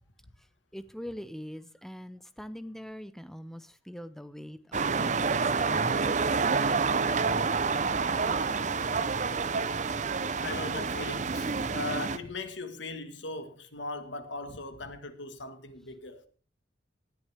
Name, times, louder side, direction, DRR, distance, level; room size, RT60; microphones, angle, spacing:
voice 1, 0.7-6.4, equal, ahead, 0.7 m, -43 dB
sound 1, 4.7-12.2, right 4 dB, 40° right, 0.7 m, -28 dB
voice 2, 10.4-16.2, left 2 dB, 75° left, 1.7 m, -39 dB
19.0 x 10.5 x 3.5 m
head